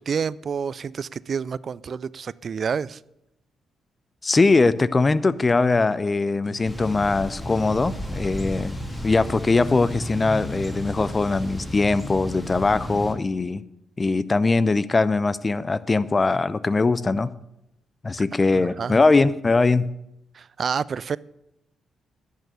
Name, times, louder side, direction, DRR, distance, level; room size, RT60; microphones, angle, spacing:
voice 1, 0.0-3.0 18.5-19.0 20.3-21.2, right 6 dB, 55° right, 0.4 m, -29 dB
voice 2, 4.2-8.7 9.0-13.6 14.0-17.3 18.0-19.9, left 3 dB, 35° left, 0.6 m, -21 dB
sound 1, 6.4-12.1, right 1 dB, 70° left, 3.8 m, -48 dB
Thunder / Bicycle, 6.6-13.1, equal, 15° left, 2.6 m, -33 dB
10.5 x 6.6 x 8.1 m
hypercardioid pair, 40°, 0 cm